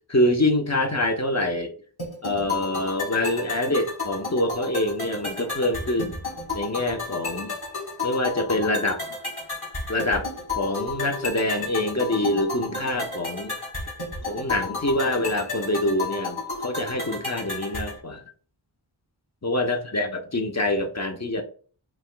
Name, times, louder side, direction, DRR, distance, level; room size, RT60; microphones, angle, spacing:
voice 1, 0.1-1.7 2.2-6.2 6.5-7.6 8.0-9.0 9.9-10.3 10.6-13.5 14.3-18.2 19.4-21.4, left 1 dB, 35° left, 4 dB, 0.9 m, -25 dB
sound 1, 2.0-18.0, left 3 dB, 50° left, 2.0 m, -33 dB
7.3 x 3.0 x 2.2 m, 0.42 s
wide cardioid pair, 50°, 48 cm